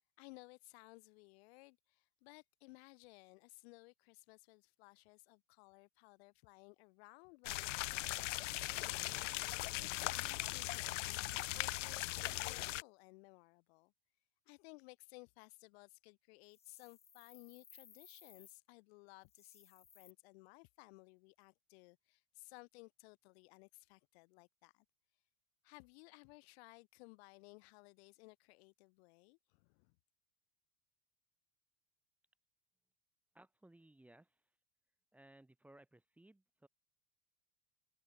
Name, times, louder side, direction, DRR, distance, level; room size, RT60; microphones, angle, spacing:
voice 1, 0.2-13.9 14.4-24.8 25.6-30.0, left 27 dB, 60° left, 3.3 m, -59 dB
sound 1, 7.4-12.8, left 18 dB, 90° left, 1.5 m, -39 dB
sound 2, 16.5-18.6 19.2-20.1, left 7 dB, 15° left, 5.3 m, -62 dB
voice 2, 33.3-34.4 35.1-36.7, right 1 dB, 5° right, 2.5 m, -62 dB
supercardioid pair, 165°, 36 cm